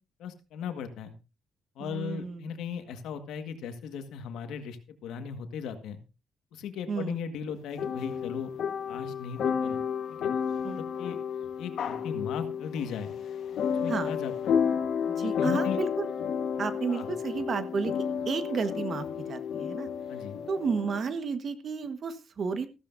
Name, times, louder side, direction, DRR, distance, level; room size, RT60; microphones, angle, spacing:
voice 1, 0.2-1.1 1.8-6.0 6.5-8.5 8.9-9.8 10.2-10.3 10.8-11.2 11.6-13.1 13.7-14.6 15.1-15.8 16.9-17.1 20.1-20.4, left 7 dB, 85° left, 7 dB, 1.8 m, -37 dB
voice 2, 1.8-2.5 6.9-7.1 10.6-10.8 13.9-14.2 15.1-16.1 16.6-19.9 20.5-22.7, right 5 dB, 50° right, 11 dB, 1.5 m, -32 dB
sound 1, 7.8-21.0, left 7 dB, 70° left, 1.5 m, -31 dB
15.0 x 14.0 x 2.7 m, 0.29 s
cardioid pair, 90°, 0 cm